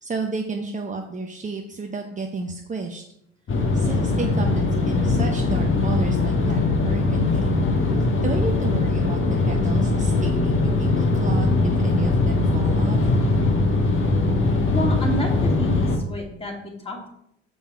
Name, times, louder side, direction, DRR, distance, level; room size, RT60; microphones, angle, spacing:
voice 1, 0.0-3.0 3.7-6.6 6.8-7.5 8.2-13.0, right 3 dB, 20° right, 2 dB, 0.9 m, -31 dB
sound 1, 3.5-16.0, left 3 dB, 35° left, 1.5 m, -21 dB
voice 2, 14.7-17.1, left 1 dB, 15° left, 0 dB, 2.5 m, -30 dB
7.2 x 5.6 x 4.7 m, 0.75 s
hypercardioid pair, 70°, 36 cm